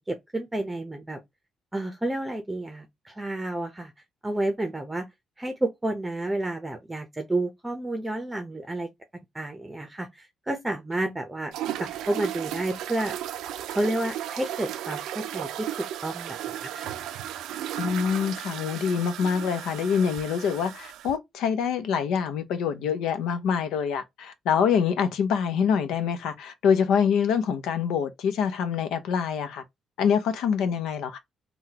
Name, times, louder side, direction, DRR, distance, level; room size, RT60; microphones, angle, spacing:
voice 1, 0.1-1.2 1.7-3.9 4.2-5.1 5.4-8.9 9.3-11.5 11.8-13.1 13.7-17.0, right 1 dB, 15° right, 0.7 m, -30 dB
sound 1, 11.5-21.1, right 11 dB, 90° right, 0.4 m, -35 dB
voice 2, 17.8-29.6 30.0-31.2, left 7 dB, 85° left, 0.6 m, -25 dB
3.8 x 2.3 x 2.8 m
cardioid pair, 90°, 0 cm